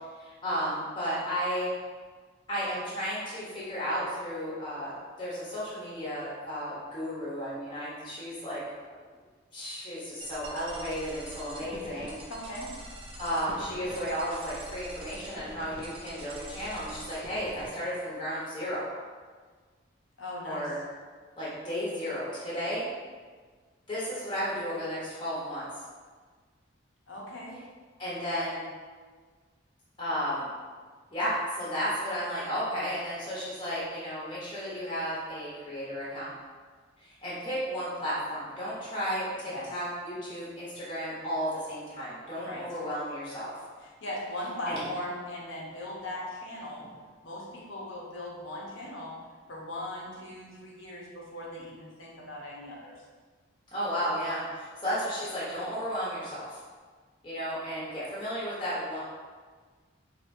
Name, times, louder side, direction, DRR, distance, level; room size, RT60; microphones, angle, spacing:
voice 1, 0.2-1.7 2.5-8.6 8.9-9.0 9.5-12.2 13.2-18.9 20.4-20.8 21.4-22.9 23.9-25.7 28.0-28.6 30.0-30.5 31.1-36.3 37.0-43.5 44.6-44.8 53.7-56.6 57.2-59.0, equal, 25° left, -8 dB, 0.9 m, -33 dB
sound 1, 10.2-17.7, right 1 dB, 25° right, 0.4 m, -44 dB
voice 2, 12.3-12.7 20.2-20.7 27.1-27.6 39.4-39.7 42.4-42.6 43.8-46.8 47.2-49.1 49.5-52.9, left 1 dB, 75° left, -4 dB, 0.9 m, -39 dB
4.3 x 2.8 x 2.6 m, 1.5 s
head